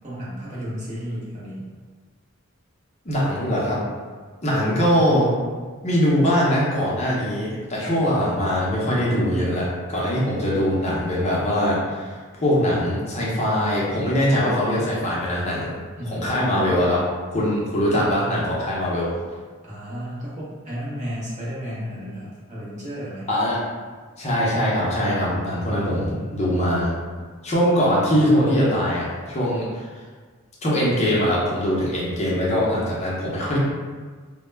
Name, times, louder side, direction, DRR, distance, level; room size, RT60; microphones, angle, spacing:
voice 1, 0.0-1.7 4.6-4.8 16.0-16.6 19.6-23.3, equal, 35° right, -8 dB, 0.7 m, -33 dB
voice 2, 3.1-3.8 4.4-5.3 5.8-15.8 16.1-17.0 17.3-19.1 23.3-23.6 24.2-27.0 27.4-29.7 30.6-33.6, equal, 30° left, -6 dB, 0.6 m, -22 dB
2.1 x 2.0 x 3.2 m, 1.5 s
head